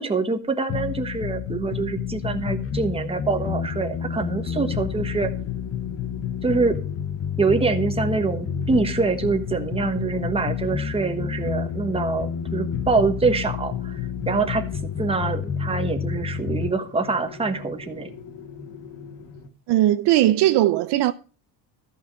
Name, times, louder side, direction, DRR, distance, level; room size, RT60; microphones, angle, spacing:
voice 1, 0.0-5.3 6.4-6.8 7.4-14.0 14.3-14.7 15.0-18.1, right 4 dB, 15° right, 1.4 m, -25 dB
sound 1, 0.7-16.7, left 7 dB, 30° left, 0.6 m, -29 dB
sound 2, 3.2-19.5, left 4 dB, 65° left, 2.7 m, -41 dB
voice 2, 19.7-21.1, right 14 dB, 60° right, 0.7 m, -18 dB
13.5 x 5.9 x 6.6 m
cardioid pair, 145°, 45 cm